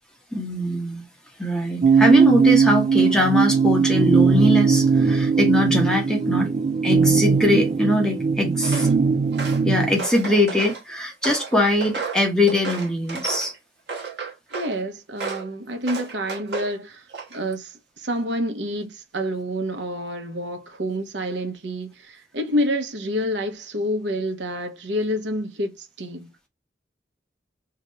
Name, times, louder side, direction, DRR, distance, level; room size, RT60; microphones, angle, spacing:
voice 1, 0.3-1.0 1.4-6.5 6.8-8.9 9.6-13.5, left 1 dB, 5° left, 1.1 m, -22 dB
sound 1, 1.8-10.0, right 5 dB, 40° right, 0.4 m, -19 dB
Walk footsteps, 8.6-8.9 9.3-10.8 11.2-13.5 13.9-14.8 15.2-15.5 15.9-16.7 17.1-17.5, right 4 dB, 65° right, 1.1 m, -33 dB
voice 2, 14.5-17.0 17.3-26.3, equal, 85° right, 0.9 m, -28 dB
2.9 x 2.5 x 4.3 m
head